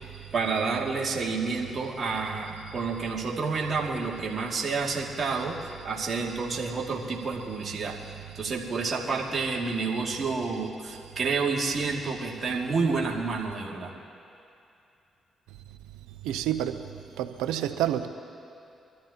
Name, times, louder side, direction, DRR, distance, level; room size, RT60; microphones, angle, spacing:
voice 1, 0.3-5.6 5.8-7.9 8.4-13.9, right 4 dB, 55° right, -2 dB, 2.4 m, -29 dB
voice 2, 16.2-16.8 17.2-18.1, right 11 dB, 85° right, 9 dB, 0.7 m, -28 dB
25.5 x 13.0 x 2.9 m, 2.6 s
hypercardioid pair, 45°, 0 cm